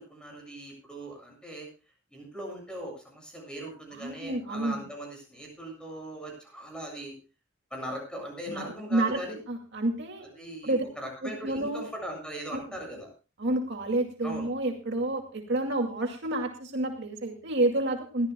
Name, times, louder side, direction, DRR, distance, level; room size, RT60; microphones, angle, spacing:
voice 1, 0.0-1.7 2.1-7.1 7.7-9.4 10.2-13.1 14.2-14.5, right 1 dB, 5° left, 1 dB, 7.6 m, -40 dB
voice 2, 3.9-4.8 8.5-9.2 9.5-10.3 10.6-10.8 11.2-11.9 12.5-12.6 13.4-18.3, right 2 dB, 60° right, 2 dB, 2.3 m, -29 dB
22.5 x 14.5 x 2.3 m, 0.32 s
head